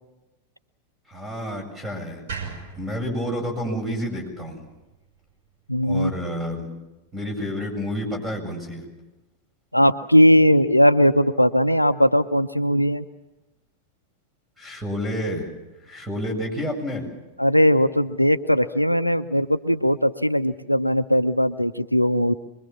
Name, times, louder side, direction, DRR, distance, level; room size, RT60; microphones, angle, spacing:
voice 1, 1.1-2.2 2.8-4.7 5.8-6.7 7.1-8.9 14.6-15.5 15.8-17.1, equal, 10° right, 3 dB, 7.6 m, -29 dB
sound 1, 2.3-5.4, right 5 dB, 60° right, 6.1 m, -39 dB
voice 2, 5.7-6.1 9.7-13.0 17.4-22.3, equal, 90° left, 12 dB, 0.7 m, -19 dB
25.0 x 22.0 x 7.3 m, 1.0 s
figure-of-eight pair, 90°, 0 cm